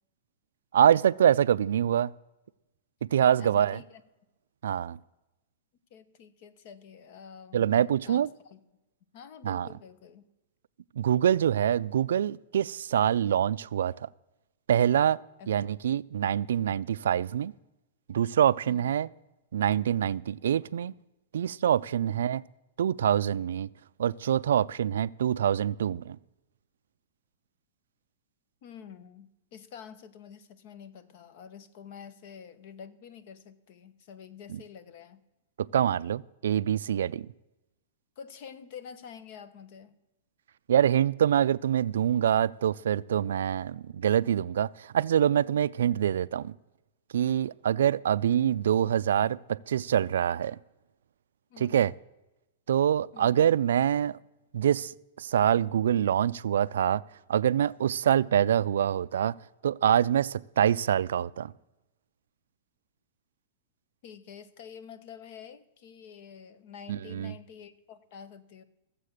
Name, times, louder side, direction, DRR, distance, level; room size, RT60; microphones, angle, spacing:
voice 1, 0.7-2.1 3.1-3.8 4.6-5.0 7.5-8.3 9.4-9.7 11.0-14.1 14.7-15.2 15.5-17.5 18.1-19.1 19.5-20.9 21.3-22.4 22.8-23.7 24.0-26.2 34.5-34.6 35.6-37.3 40.7-46.5 47.1-50.6 51.6-51.9 52.7-54.2 54.5-54.9 55.2-57.0 57.3-59.4 59.6-61.5 66.9-67.3, right 9 dB, 85° right, 0.3 m, -25 dB
voice 2, 3.4-4.0 5.9-8.6 9.1-10.2 15.4-15.5 18.6-18.9 22.1-22.4 28.6-35.2 38.2-40.0 51.5-51.9 53.1-53.5 64.0-68.6, left 7 dB, 40° left, 0.8 m, -48 dB
15.0 x 7.5 x 6.4 m
supercardioid pair, 170°, 0 cm